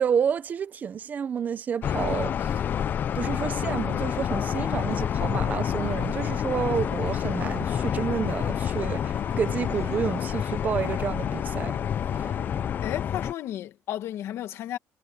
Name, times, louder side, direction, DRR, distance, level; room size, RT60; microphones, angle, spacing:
voice 1, 0.0-2.6 3.1-11.7 12.2-12.3, right 7 dB, 35° right, 0.9 m, -30 dB
sound 1, 1.8-13.3, left 9 dB, 40° left, 0.5 m, -28 dB
sound 2, 5.3-12.7, right 11 dB, 60° right, 3.7 m, -54 dB
voice 2, 12.8-14.8, left 12 dB, 60° left, 2.0 m, -33 dB
cardioid pair, 145°, 5 cm